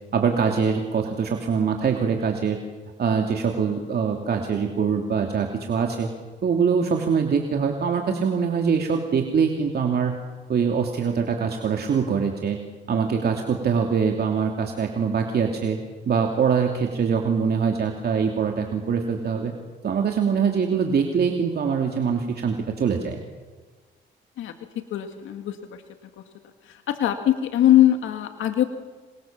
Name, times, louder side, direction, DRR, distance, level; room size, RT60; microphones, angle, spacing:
voice 1, 0.1-2.6 3.0-6.1 6.4-10.2 10.5-12.6 12.9-15.8 16.1-19.5 19.8-23.2, right 6 dB, 55° right, 2 dB, 2.8 m, -23 dB
voice 2, 24.9-25.5 26.9-28.6, left 12 dB, 80° left, 6 dB, 2.1 m, -20 dB
27.0 x 23.5 x 7.5 m, 1.3 s
cardioid pair, 90°, 20 cm